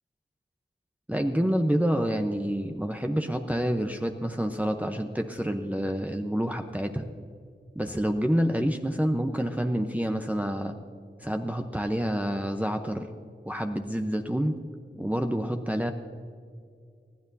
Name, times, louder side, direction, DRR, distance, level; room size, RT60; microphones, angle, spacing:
voice 1, 1.1-7.0 7.7-10.7 11.2-13.1 13.5-14.5 14.9-15.9, equal, 10° right, 4 dB, 0.8 m, -28 dB
20.5 x 13.5 x 2.7 m, 2.2 s
cardioid pair, 40°, 19 cm